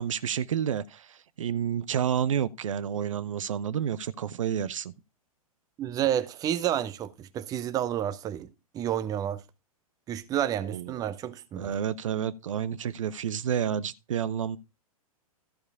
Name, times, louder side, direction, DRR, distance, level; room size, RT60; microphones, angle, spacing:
voice 1, 0.0-4.9 10.6-10.9 11.6-14.6, right 8 dB, 60° right, 0.6 m, -30 dB
voice 2, 5.8-9.4 10.1-11.7, right 11 dB, 20° right, 0.7 m, -30 dB
14.0 x 4.8 x 4.7 m
figure-of-eight pair, 105°, 19 cm